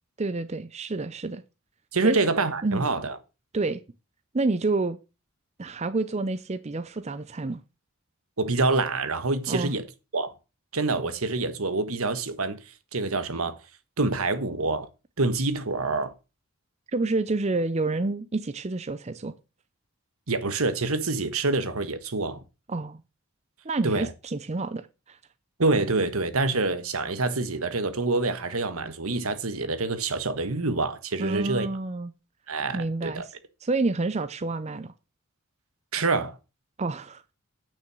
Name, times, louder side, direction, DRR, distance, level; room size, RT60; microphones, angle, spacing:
voice 1, 0.2-1.4 2.0-2.2 2.6-2.8 3.5-3.8 4.3-5.0 5.6-7.6 9.5-9.7 16.9-19.3 22.7-23.0 23.6-25.2 31.2-32.1 32.7-33.3 33.6-34.9 36.8-37.2, right 3 dB, 30° right, 0.5 m, -28 dB
voice 2, 1.9-3.2 8.4-9.8 10.1-10.3 10.7-12.6 12.9-13.6 14.0-14.9 15.2-16.1 20.3-22.4 23.8-24.1 25.6-31.7 32.5-33.2 35.9-36.3, right 3 dB, 80° right, 1.4 m, -26 dB
9.2 x 6.4 x 6.2 m
head